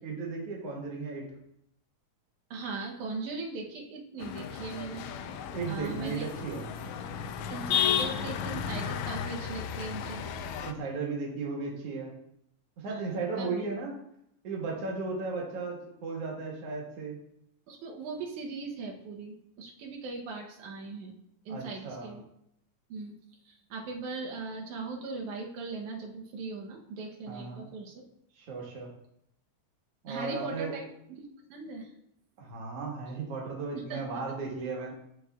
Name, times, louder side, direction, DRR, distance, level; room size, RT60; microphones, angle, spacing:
voice 1, 0.0-1.3 5.5-6.7 10.6-12.1 12.8-14.0 14.4-17.2 21.5-22.1 27.3-27.7 28.4-28.9 30.0-30.8 32.4-34.9, right 4 dB, 60° right, -2 dB, 2.3 m, -35 dB
voice 2, 2.5-5.4 5.7-6.3 7.5-10.2 12.9-13.7 17.7-21.2 21.5-22.2 22.9-23.1 23.4-28.0 30.1-30.8 31.2-31.9 33.7-34.0, right 3 dB, 85° right, 0 dB, 2.3 m, -39 dB
sound 1, 4.2-10.7, left 8 dB, 80° left, 1.8 m, -33 dB
13.5 x 4.9 x 2.3 m, 0.77 s
omnidirectional pair, 3.3 m